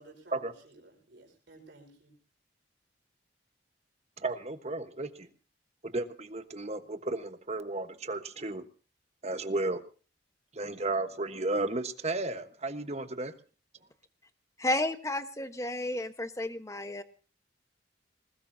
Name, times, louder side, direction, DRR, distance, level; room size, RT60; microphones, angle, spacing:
voice 1, 0.0-2.2, right 2 dB, 70° right, 0 dB, 5.3 m, -55 dB
voice 2, 4.2-5.3 5.8-8.6 9.2-9.8 10.5-13.3, right 2 dB, 35° right, 9 dB, 1.3 m, -33 dB
voice 3, 14.6-17.0, left 1 dB, 15° left, 9 dB, 1.2 m, -32 dB
20.5 x 19.5 x 2.8 m, 0.37 s
head